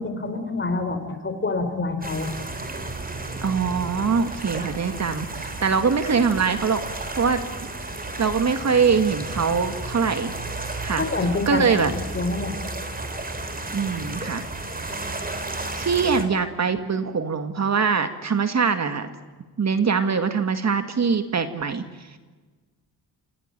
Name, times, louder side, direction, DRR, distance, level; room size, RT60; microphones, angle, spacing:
voice 1, 0.0-2.3 11.0-11.7 11.9-12.5, left 3 dB, 30° left, 8 dB, 4.3 m, -27 dB
sound 1, 2.0-16.2, right 2 dB, 20° right, 3.8 m, -33 dB
voice 2, 3.4-6.8 7.1-7.4 8.2-10.3 10.8-11.0 11.5-11.9 13.7-14.4 14.9-15.0 15.8-19.1 19.6-21.8, right 5 dB, 40° right, 9 dB, 2.0 m, -23 dB
28.0 x 17.5 x 9.0 m, 1.3 s
cardioid pair, 100°, 40 cm